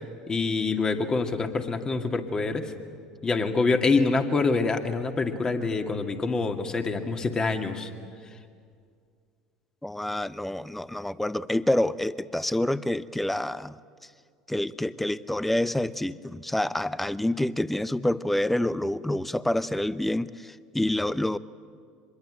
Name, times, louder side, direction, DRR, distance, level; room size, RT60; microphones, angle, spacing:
voice 1, 0.3-2.7 3.2-7.9, left 3 dB, 25° left, 5 dB, 2.3 m, -26 dB
voice 2, 9.8-13.8 14.5-21.4, left 1 dB, 5° left, 17 dB, 0.7 m, -27 dB
24.5 x 21.5 x 9.0 m, 2.2 s
hypercardioid pair, 75°, 3 cm